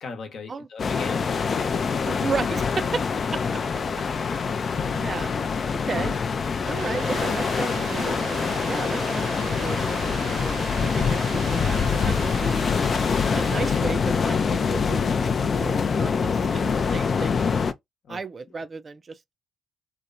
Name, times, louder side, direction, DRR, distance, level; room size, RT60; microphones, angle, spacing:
voice 1, 0.0-1.9 18.0-18.2, left 5 dB, 60° left, 0.9 m, -37 dB
sound 1, 0.8-17.7, left 5 dB, 45° left, 0.3 m, -25 dB
voice 2, 2.1-3.0 3.3-3.4 4.4-4.6 4.8-5.3 5.7-6.2 6.7-9.8 10.4-12.7 13.3-15.1 15.4-17.5 18.1-19.2, right 4 dB, 35° right, 0.3 m, -34 dB
sound 2, 6.8-13.8, right 5 dB, 65° right, 0.7 m, -37 dB
2.9 x 2.0 x 2.5 m
cardioid pair, 90°, 0 cm